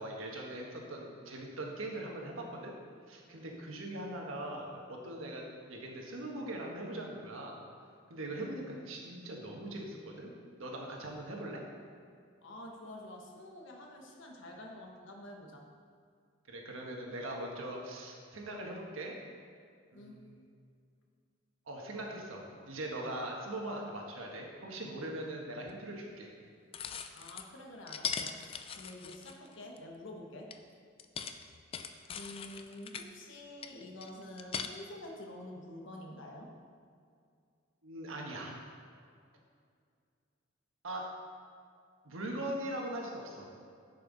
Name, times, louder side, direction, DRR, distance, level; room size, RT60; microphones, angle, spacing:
voice 1, 0.0-2.8 3.1-7.6 8.1-10.3 10.6-11.6 16.5-19.1 19.9-20.4 21.7-26.3 37.8-38.6 40.8-41.1 42.0-43.5, right 1 dB, 80° right, 0 dB, 1.4 m, -41 dB
voice 2, 12.4-15.6 19.9-20.2 27.1-30.5 32.1-36.5, left 1 dB, 65° left, 0 dB, 1.2 m, -48 dB
sound 1, 25.7-25.8 26.7-27.5 27.9-29.8 30.5-30.6 31.0-33.1 33.6-34.7, left 7 dB, 25° left, 0.3 m, -40 dB
11.0 x 5.7 x 4.0 m, 2.3 s
head